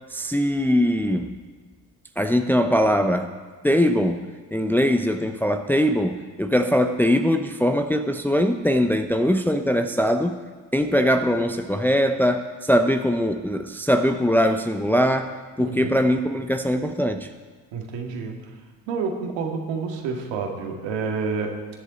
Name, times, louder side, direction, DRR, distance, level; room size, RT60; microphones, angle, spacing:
voice 1, 0.1-1.4 2.2-10.4 10.7-17.3, equal, 5° left, 7 dB, 0.7 m, -21 dB
voice 2, 15.6-16.0 17.7-18.4 18.9-21.6, right 5 dB, 65° right, 2 dB, 2.1 m, -29 dB
19.5 x 7.3 x 4.1 m, 1.4 s
hypercardioid pair, 60°, 48 cm